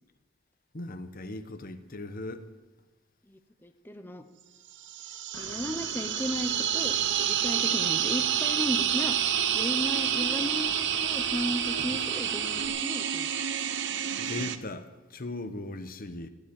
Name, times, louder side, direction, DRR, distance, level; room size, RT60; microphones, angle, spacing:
voice 1, 0.7-2.5 14.2-16.3, left 2 dB, 45° left, 1.1 m, -38 dB
voice 2, 3.3-4.2 5.4-13.3, equal, 10° left, 0.8 m, -35 dB
sound 1, 4.8-14.6, right 10 dB, 60° right, 0.8 m, -29 dB
Engine / Mechanisms, 5.3-12.7, left 2 dB, 80° left, 1.8 m, -44 dB
17.0 x 7.8 x 8.8 m
head